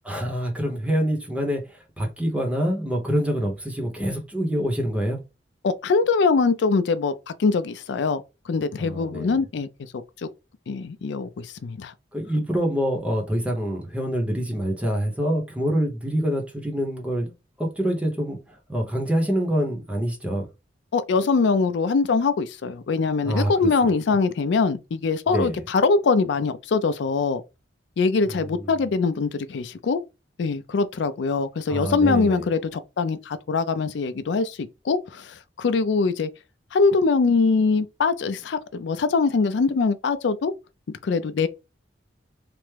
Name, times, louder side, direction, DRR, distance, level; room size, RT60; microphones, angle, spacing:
voice 1, 0.0-5.2 8.8-9.4 12.1-17.3 17.6-20.5 23.2-23.5 23.8-23.9 25.3-25.6 28.3-28.7 31.7-32.5, equal, 5° right, 0.7 m, -26 dB
voice 2, 5.6-9.7 9.9-10.3 10.7-11.9 20.9-27.4 28.0-30.0 30.4-36.3 36.7-40.5 40.9-41.5, left 4 dB, 75° left, 0.4 m, -23 dB
3.3 x 2.0 x 3.2 m
head